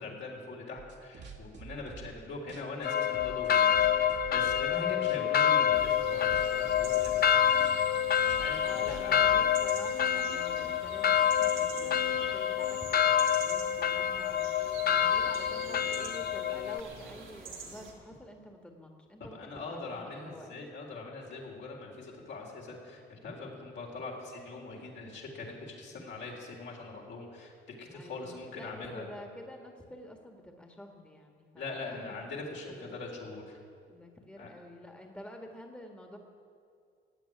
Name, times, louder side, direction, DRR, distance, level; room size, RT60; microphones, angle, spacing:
voice 1, 0.0-7.7 8.2-9.4 19.3-27.5 27.8-29.1 31.6-33.6 34.4-34.5, left 3 dB, 65° left, -1 dB, 3.8 m, -42 dB
sound 1, 0.8-2.2 2.5-4.8 5.0-5.4 5.7-9.5, right 5 dB, 60° right, 1.9 m, -48 dB
sound 2, 2.8-16.8, left 9 dB, 50° left, 0.6 m, -27 dB
sound 3, 5.7-17.9, right 5 dB, 80° right, 2.9 m, -46 dB
voice 2, 8.6-20.5 24.8-24.9 27.9-32.0 32.5-32.9 33.9-36.2, left 1 dB, 5° left, 3 dB, 1.7 m, -49 dB
16.0 x 8.2 x 9.8 m, 2.3 s
cardioid pair, 90°, 20 cm